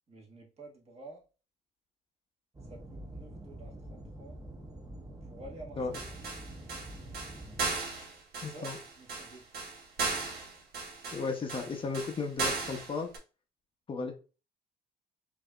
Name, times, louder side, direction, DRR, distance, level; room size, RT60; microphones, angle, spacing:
voice 1, 0.1-1.2 2.6-4.4 5.2-6.1 8.4-9.4, right 2 dB, 35° right, -2 dB, 1.6 m, -51 dB
sound 1, 2.5-7.8, right 1 dB, 20° right, 0.9 m, -46 dB
sound 2, 5.9-13.2, right 4 dB, 65° right, 1.2 m, -36 dB
voice 2, 8.4-8.8 11.1-13.1 13.9-14.1, left 4 dB, 30° left, 3 dB, 0.8 m, -34 dB
5.1 x 2.8 x 2.4 m, 0.34 s
cardioid pair, 110°, 17 cm